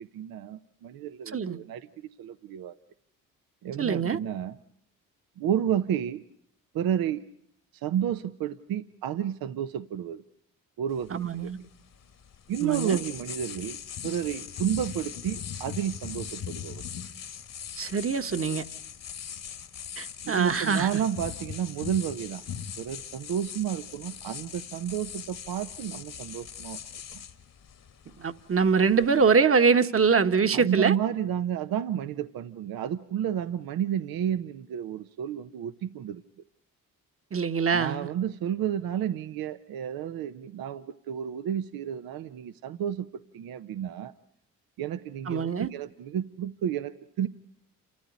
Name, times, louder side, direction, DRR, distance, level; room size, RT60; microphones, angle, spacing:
voice 1, 0.0-2.7 3.6-4.6 5.4-6.2 6.7-7.2 7.7-10.2 10.8-11.5 12.5-16.8 20.2-22.4 22.8-26.8 27.1-27.2 30.5-36.2 37.7-44.1 44.8-47.3, right 9 dB, 70° right, 0.9 m, -31 dB
voice 2, 3.8-4.2 11.1-11.6 12.6-13.0 17.8-18.6 20.0-20.9 28.2-30.9 37.3-38.1 45.3-45.7, right 5 dB, 35° right, 1.4 m, -24 dB
sound 1, 10.9-29.3, left 8 dB, 60° left, 1.9 m, -40 dB
29.0 x 14.5 x 9.4 m
hypercardioid pair, 50°, 37 cm